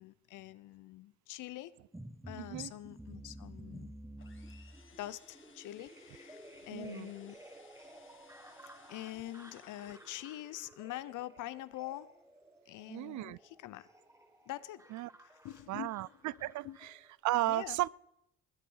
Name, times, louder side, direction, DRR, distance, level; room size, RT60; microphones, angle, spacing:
voice 1, 0.0-1.7 2.2-3.9 5.0-7.4 8.9-12.1 12.7-13.9 14.5-14.8 15.2-15.9 16.4-16.8 17.5-17.8, left 15 dB, 85° left, 0.8 m, -45 dB
sound 1, 1.9-17.1, right 1 dB, 10° right, 1.6 m, -53 dB
voice 2, 2.4-2.7 6.7-7.1 12.9-13.4 14.9-15.1 15.7-16.9 17.2-17.9, right 17 dB, 70° right, 0.4 m, -35 dB
sound 2, 4.2-10.7, left 5 dB, 40° left, 1.8 m, -63 dB
19.5 x 8.6 x 5.5 m
cardioid pair, 90°, 30 cm